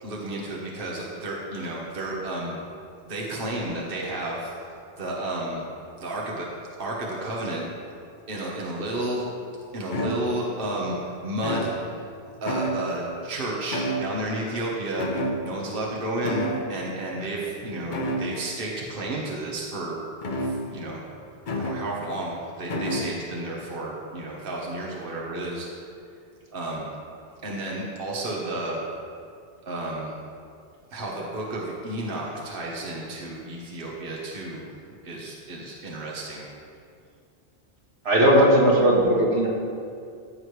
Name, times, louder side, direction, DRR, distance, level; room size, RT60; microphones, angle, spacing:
voice 1, 0.0-2.6 3.0-4.5 5.0-5.6 6.0-6.5 6.8-7.7 8.3-9.2 9.7-11.7 12.4-15.1 15.4-20.0 20.4-21.0 21.5-25.7 26.5-26.9 27.4-28.8 29.7-30.2 30.9-34.7 35.0-36.5, right 1 dB, 55° right, -3 dB, 1.3 m, -32 dB
sound 1, 9.9-10.6 11.4-12.2 12.5-13.2 13.7-14.5 15.0-15.9 16.2-16.8 17.9-18.5 20.2-20.9 21.5-22.0 22.7-23.3, equal, 50° left, 0.9 m, -30 dB
voice 2, 38.1-39.5, right 1 dB, 80° right, -3 dB, 1.8 m, -18 dB
14.0 x 6.5 x 3.2 m, 2.4 s
omnidirectional pair, 1.1 m